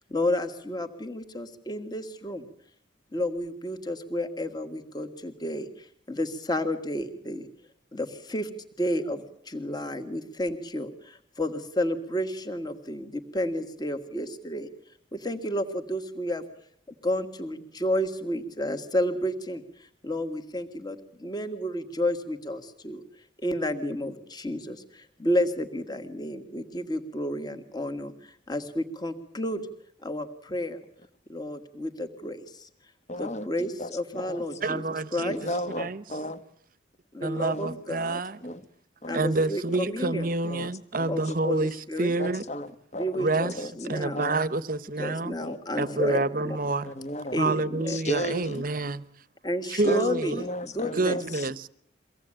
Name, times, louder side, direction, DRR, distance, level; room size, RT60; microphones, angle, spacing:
voice 1, 0.0-2.5 3.1-7.5 7.9-8.5 8.8-14.7 15.1-16.5 17.0-23.0 23.4-29.6 30.0-30.8 31.3-32.7 33.2-35.4 37.1-38.2 39.1-40.3 41.1-42.1 42.9-44.2 45.0-46.6 47.3-48.0 49.4-51.2, left 1 dB, 20° left, 1.8 m, -31 dB
voice 2, 33.1-34.4 35.2-36.4 37.4-37.8 38.4-38.6 39.0-39.2 40.4-40.7 41.0-41.2 42.2-43.3 43.5-43.7 44.1-44.4 45.4-46.1 46.8-47.4 47.9-48.6 49.8-50.0 50.3-51.5, equal, 35° left, 1.4 m, -35 dB
voice 3, 34.6-35.5 35.8-36.0 37.2-38.4 39.1-42.4 43.1-43.5 43.9-45.4 45.8-46.9 47.4-49.0 49.7-50.4 51.0-51.7, right 2 dB, 45° right, 0.9 m, -28 dB
23.5 x 17.5 x 8.9 m
head